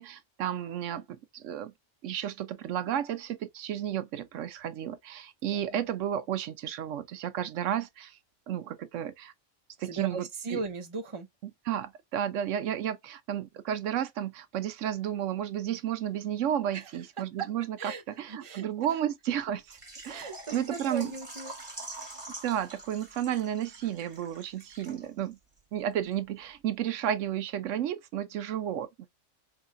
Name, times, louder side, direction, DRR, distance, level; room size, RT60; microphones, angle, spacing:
voice 1, 0.0-1.7 2.0-8.2 8.5-9.3 9.8-10.6 11.7-17.9 18.2-19.8 20.0-21.1 22.4-25.4 25.7-28.9, right 10 dB, 80° right, 1.0 m, -32 dB
voice 2, 9.8-11.3 16.7-16.9 17.4-17.5 17.8-18.0 18.3-18.9 20.1-21.5, right 5 dB, 35° right, 0.5 m, -37 dB
Water / Liquid, 19.7-25.3 25.6-25.7 26.1-26.2, right 2 dB, 20° right, 1.3 m, -45 dB
4.7 x 2.2 x 2.5 m
omnidirectional pair, 1.3 m